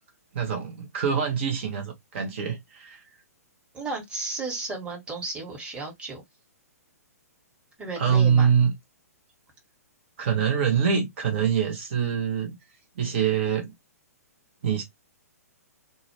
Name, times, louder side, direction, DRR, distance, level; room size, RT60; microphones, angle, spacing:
voice 1, 0.3-3.0 8.0-8.7 10.2-12.6 13.0-13.7 14.6-14.8, right 7 dB, 45° right, 0.6 m, -24 dB
voice 2, 3.7-6.2 7.8-8.5, right 3 dB, 10° right, 1.0 m, -34 dB
2.3 x 2.1 x 3.0 m
figure-of-eight pair, 115°, 9 cm